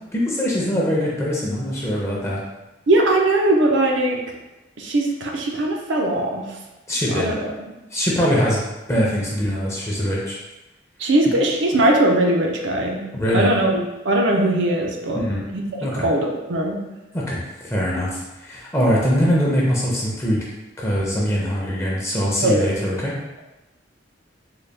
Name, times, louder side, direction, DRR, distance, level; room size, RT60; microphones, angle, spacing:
voice 1, 0.1-2.4 6.9-7.3 7.9-8.6 8.9-10.4 13.1-13.5 15.1-15.4 15.8-16.1 17.1-18.1 18.4-20.4 20.8-23.1, equal, 15° left, -5 dB, 0.6 m, -22 dB
voice 2, 2.9-4.2 4.8-6.6 7.1-7.7 11.0-13.0 13.3-15.2 15.5-15.6 16.0-16.8 22.4-22.7, right 1 dB, 70° right, 0 dB, 0.5 m, -20 dB
3.9 x 2.2 x 3.3 m, 1.0 s
head